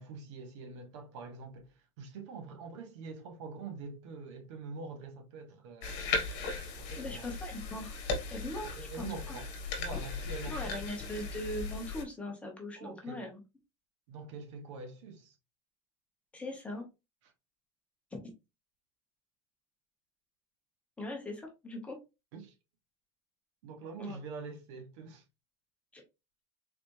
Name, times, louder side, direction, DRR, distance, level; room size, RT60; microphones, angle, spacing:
voice 1, 0.0-6.1 6.8-7.3 8.6-9.5 9.8-10.9 12.8-13.2 14.1-15.4 17.2-17.3 22.3-22.5 23.6-25.2, right 4 dB, 70° right, 1.2 m, -45 dB
sound 1, 5.8-12.0, left 4 dB, 50° left, 1.2 m, -37 dB
voice 2, 7.0-8.0 8.3-9.3 10.5-13.4 16.3-16.9 21.0-22.0 24.0-24.2 25.9-26.0, left 1 dB, 10° left, 1.1 m, -40 dB
4.1 x 3.2 x 2.7 m
supercardioid pair, 155°, 16 cm